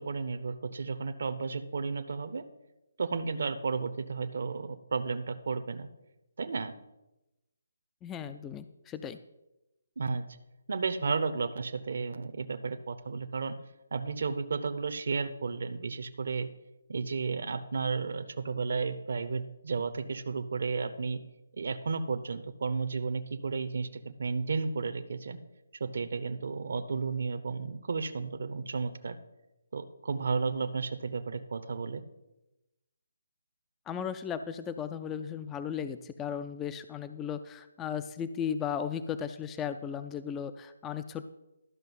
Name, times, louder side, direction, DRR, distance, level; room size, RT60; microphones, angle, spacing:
voice 1, 0.0-2.4 3.0-5.9 6.4-6.7 10.0-10.2 10.7-13.6 13.9-16.5 16.9-21.2 21.5-25.4 25.8-29.2 29.7-32.0, right 4 dB, 65° right, 10 dB, 0.7 m, -33 dB
voice 2, 8.0-9.2 33.9-41.3, left 8 dB, 15° left, 11 dB, 0.4 m, -36 dB
12.5 x 5.7 x 5.5 m, 0.95 s
figure-of-eight pair, 150°, 0 cm